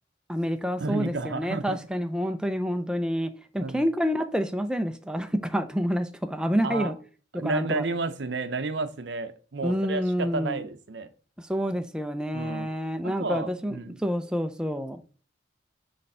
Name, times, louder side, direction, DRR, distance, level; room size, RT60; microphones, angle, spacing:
voice 1, 0.3-6.9 7.4-7.8 9.6-10.6 11.4-15.0, equal, 5° right, 0.4 m, -28 dB
voice 2, 0.8-1.8 3.6-3.9 6.6-6.9 7.3-11.1 12.3-12.7 13.0-14.0, right 3 dB, 65° right, 0.6 m, -31 dB
6.6 x 3.3 x 5.4 m
head